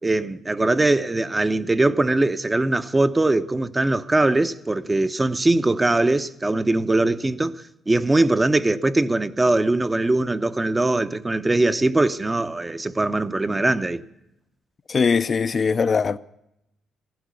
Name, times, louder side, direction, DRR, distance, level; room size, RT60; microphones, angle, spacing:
voice 1, 0.0-14.0, right 2 dB, 20° right, 0.7 m, -21 dB
voice 2, 14.9-16.2, left 5 dB, 40° left, 0.5 m, -21 dB
15.0 x 12.0 x 8.1 m
cardioid pair, 90°, 0 cm